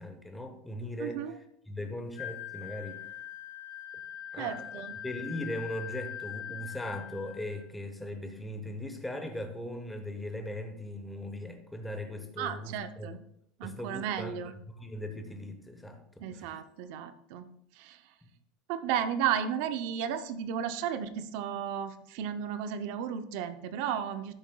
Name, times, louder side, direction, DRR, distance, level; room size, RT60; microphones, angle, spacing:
voice 1, 0.0-1.3 1.7-3.1 3.9-4.0 4.3-13.1 13.6-14.4 14.7-16.6, left 1 dB, 5° left, 5 dB, 0.8 m, -39 dB
voice 2, 1.0-1.3 4.4-4.9 12.4-13.2 13.6-14.5 16.2-17.5 17.7-18.1 18.7-24.3, right 9 dB, 55° right, 10 dB, 0.5 m, -34 dB
Wind instrument woodwind instrument, 2.1-7.6, left 10 dB, 75° left, 2.7 m, -42 dB
12.0 x 6.9 x 2.2 m, 0.73 s
supercardioid pair, 170°, 0 cm